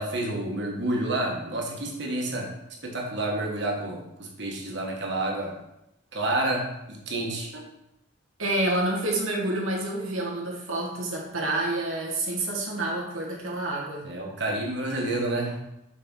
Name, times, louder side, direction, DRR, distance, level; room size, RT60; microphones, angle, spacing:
voice 1, 0.0-2.5 2.8-5.5 6.1-7.6 14.0-15.6, right 1 dB, 60° right, -1 dB, 1.4 m, -29 dB
voice 2, 8.4-14.1, right 2 dB, 85° right, -2 dB, 1.4 m, -28 dB
6.7 x 4.3 x 3.9 m, 0.85 s
head